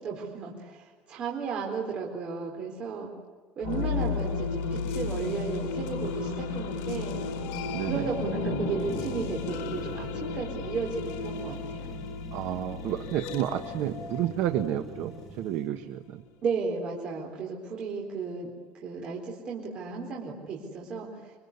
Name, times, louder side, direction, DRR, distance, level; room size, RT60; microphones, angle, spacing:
voice 1, 0.0-3.1 3.6-7.2 7.9-12.0 16.4-18.5 18.8-21.1, right 5 dB, 35° right, -2 dB, 4.1 m, -34 dB
sound 1, 3.6-15.4, left 4 dB, 70° left, 5.2 m, -34 dB
voice 2, 7.7-8.0 12.3-16.2, right 12 dB, 55° right, 6 dB, 1.4 m, -31 dB
sound 2, 8.9-15.6, right 1 dB, 5° right, 3.0 m, -45 dB
26.5 x 25.5 x 8.3 m, 1.5 s
cardioid pair, 170°, 3 cm